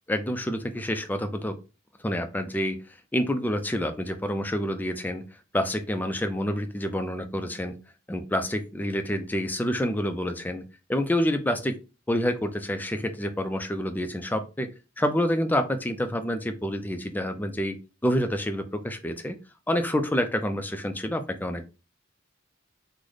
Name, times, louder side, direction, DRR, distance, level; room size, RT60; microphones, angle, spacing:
voice 1, 0.1-1.6 2.0-2.8 3.1-5.3 5.5-7.7 8.1-10.6 10.9-11.8 12.1-14.7 15.0-17.8 18.0-19.4 19.7-21.7, equal, 10° left, 7 dB, 0.3 m, -28 dB
3.2 x 2.1 x 3.8 m, 0.31 s
head